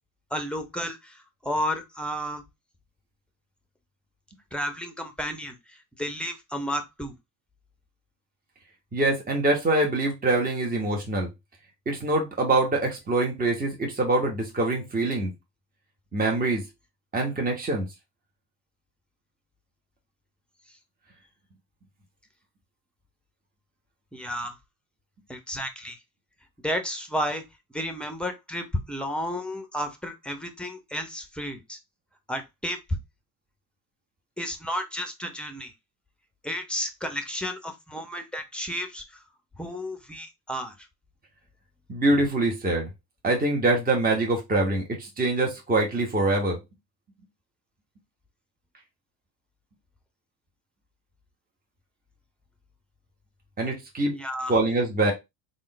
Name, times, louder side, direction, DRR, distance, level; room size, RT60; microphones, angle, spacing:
voice 1, 0.3-2.4 4.5-7.1 24.1-24.6 25.3-26.0 26.6-27.4 27.7-31.8 32.3-32.8 34.4-35.7 36.4-39.0 39.6-40.7 54.1-54.5, equal, ahead, 0.8 m, -32 dB
voice 2, 8.9-11.3 11.9-15.3 16.1-16.6 17.1-17.9 41.9-42.9 43.2-46.6 53.6-54.2 54.5-55.1, right 2 dB, 20° right, 1.2 m, -24 dB
3.6 x 2.6 x 3.2 m
hypercardioid pair, 65°, 46 cm